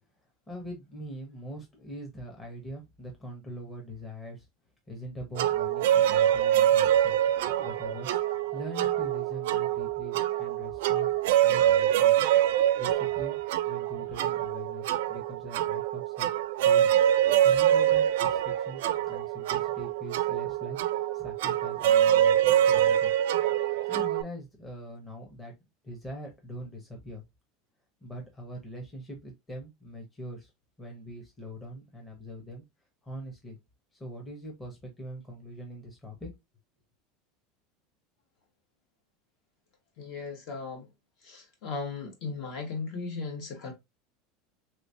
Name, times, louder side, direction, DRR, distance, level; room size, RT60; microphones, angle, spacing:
voice 1, 0.5-4.5 4.9-7.2 7.6-11.2 11.4-12.2 12.8-13.4 13.6-16.3 16.6-16.9 17.4-20.8 21.1-23.1 23.9-25.5 25.8-27.2 28.0-30.5 30.8-32.6 33.0-33.6 34.0-36.3, equal, 15° left, 1.0 m, -42 dB
sound 1, 5.4-24.2, right 11 dB, 85° right, 0.4 m, -25 dB
voice 2, 40.0-40.9 41.2-43.7, left 4 dB, 50° left, 1.5 m, -37 dB
3.4 x 3.0 x 2.6 m
supercardioid pair, 150°, 0 cm